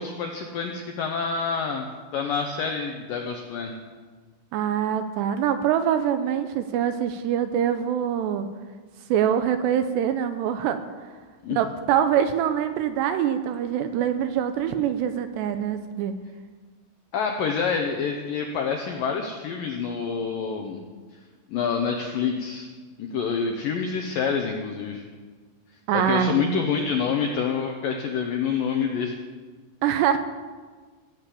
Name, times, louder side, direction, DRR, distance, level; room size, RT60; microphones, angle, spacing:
voice 1, 0.0-3.7 11.4-11.6 17.1-20.8 21.5-22.7 23.0-25.0 25.9-29.2, left 6 dB, 80° left, 3 dB, 2.0 m, -27 dB
voice 2, 4.5-8.5 9.1-10.8 11.5-16.1 25.9-26.7 29.8-30.2, right 9 dB, 85° right, 9 dB, 2.6 m, -24 dB
17.0 x 7.5 x 8.4 m, 1.4 s
omnidirectional pair, 5.3 m